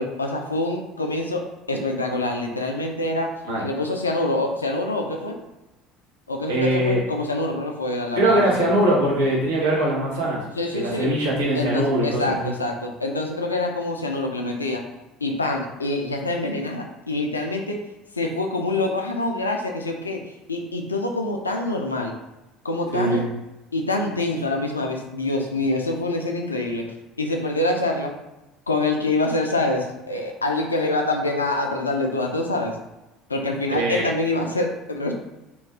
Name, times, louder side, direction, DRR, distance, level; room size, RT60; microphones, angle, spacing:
voice 1, 0.0-1.4 1.7-3.3 3.6-5.4 6.3-8.7 10.6-11.1 11.5-14.8 15.2-17.8 18.2-20.2 20.5-22.1 22.6-23.3 23.7-26.8 27.2-28.1 28.7-32.8 33.3-35.1, left 2 dB, 85° left, 2 dB, 0.3 m, -25 dB
voice 2, 6.5-7.0 8.2-10.4 10.7-12.5 22.9-23.3 33.7-34.1, right 1 dB, 70° right, -4 dB, 0.8 m, -21 dB
2.4 x 2.3 x 3.4 m, 1.0 s
figure-of-eight pair, 65°, 0 cm